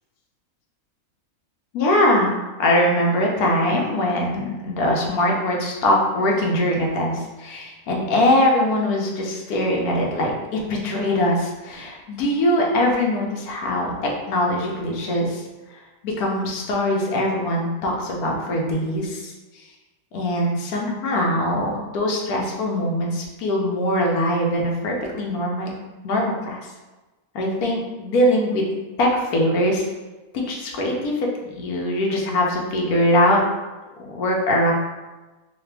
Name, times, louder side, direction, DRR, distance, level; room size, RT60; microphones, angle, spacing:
voice 1, 1.7-15.4 15.7-19.6 20.1-25.7 26.0-26.6 27.3-28.6 29.0-29.8 30.3-33.4 34.1-34.7, left 1 dB, 75° left, -1 dB, 1.3 m, -22 dB
4.1 x 2.4 x 3.3 m, 1.2 s
omnidirectional pair, 1.6 m